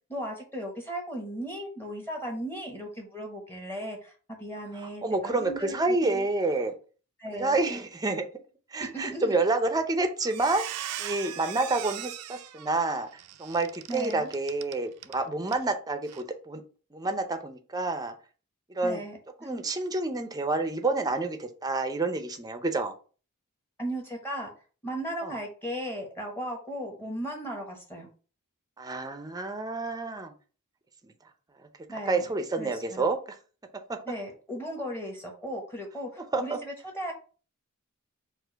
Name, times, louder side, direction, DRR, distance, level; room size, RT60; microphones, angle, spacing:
voice 1, 0.1-6.3 7.2-7.6 8.8-9.4 13.9-14.3 18.8-19.5 23.8-24.5 24.8-28.1 31.9-32.2 32.6-33.0 34.1-37.1, equal, 10° left, 0 dB, 1.0 m, -36 dB
voice 2, 5.0-6.7 7.3-8.3 8.7-10.7 11.0-13.1 13.4-16.6 16.9-18.1 18.7-19.0 19.4-22.9 25.2-25.3 28.8-30.3 31.0-31.1 32.1-33.4 33.9-34.0 36.3-36.6, right 3 dB, 15° right, 6 dB, 0.5 m, -28 dB
Squeak, 9.7-9.9 10.2-15.2 15.5-15.7 16.1-16.2, right 12 dB, 85° right, 0.4 m, -39 dB
4.4 x 2.5 x 4.5 m, 0.38 s
head